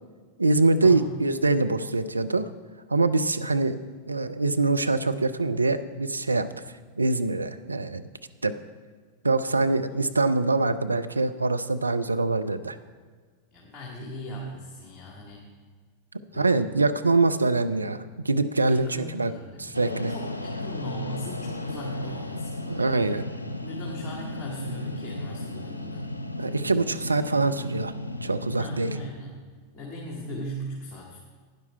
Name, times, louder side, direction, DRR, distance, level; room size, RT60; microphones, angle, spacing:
voice 1, 0.4-2.5 2.9-3.8 4.1-6.5 7.0-8.1 8.4-8.5 9.2-12.8 16.3-19.3 19.6-20.1 22.7-23.2 26.4-27.9 28.2-28.9, right 3 dB, 80° right, 9 dB, 0.5 m, -24 dB
voice 2, 13.5-15.4 16.3-16.6 18.6-19.7 20.1-23.1 23.6-26.0 28.5-29.4 29.7-31.2, equal, 25° left, -2 dB, 2.0 m, -39 dB
sound 1, 19.7-29.1, left 2 dB, 80° left, 0.6 m, -34 dB
12.0 x 9.7 x 4.4 m, 1.5 s
figure-of-eight pair, 90°, 0 cm